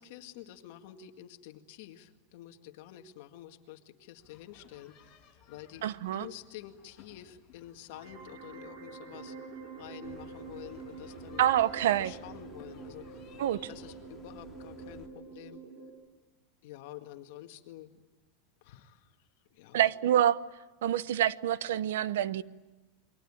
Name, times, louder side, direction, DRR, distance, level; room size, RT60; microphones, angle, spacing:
voice 1, 0.0-5.8 6.1-9.4 9.8-11.5 12.0-13.2 13.7-15.6 16.6-17.9 18.6-19.1 19.5-19.9, left 12 dB, 50° left, 2.0 m, -48 dB
sound 1, 4.2-14.0, left 6 dB, 25° left, 5.5 m, -59 dB
voice 2, 5.8-6.2 11.4-12.1 13.4-13.6 19.7-20.4 20.8-22.4, right 11 dB, 80° right, 0.9 m, -26 dB
sound 2, 7.9-15.9, right 5 dB, 60° right, 7.0 m, -46 dB
sound 3, 10.0-15.1, left 4 dB, 5° left, 2.8 m, -55 dB
28.5 x 23.5 x 8.7 m
supercardioid pair, 175°, 0 cm